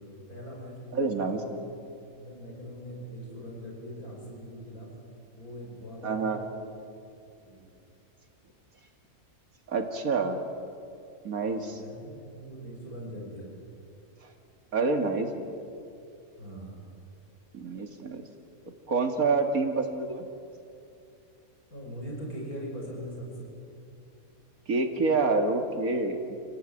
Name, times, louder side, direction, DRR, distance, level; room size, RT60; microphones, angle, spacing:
voice 1, 0.0-1.4 2.1-4.9 5.3-6.7 7.4-7.7 11.4-13.5 16.4-16.8 21.7-23.5, equal, 85° left, -1 dB, 6.2 m, -41 dB
voice 2, 0.9-1.6 6.0-6.4 9.7-10.4 11.2-11.8 14.7-15.5 17.5-18.2 18.9-20.2 24.7-26.4, right 3 dB, 70° right, 5 dB, 2.6 m, -27 dB
29.0 x 18.0 x 9.0 m, 2.5 s
omnidirectional pair, 1.5 m